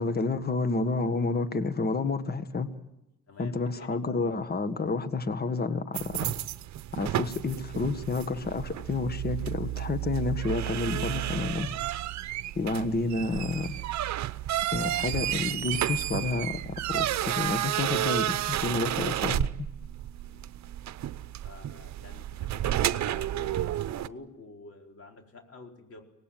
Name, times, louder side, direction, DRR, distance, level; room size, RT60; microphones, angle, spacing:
voice 1, 0.0-2.7 3.4-6.3 6.9-11.7 12.5-13.7 14.7-16.6 16.9-19.5, left 3 dB, 30° left, 11 dB, 1.6 m, -30 dB
voice 2, 3.3-4.0 20.2-20.5 21.4-26.0, left 3 dB, 50° left, 2 dB, 4.7 m, -48 dB
sound 1, 5.9-24.1, right 13 dB, 65° right, 0.8 m, -31 dB
24.5 x 19.0 x 9.2 m, 0.96 s
cardioid pair, 90°, 30 cm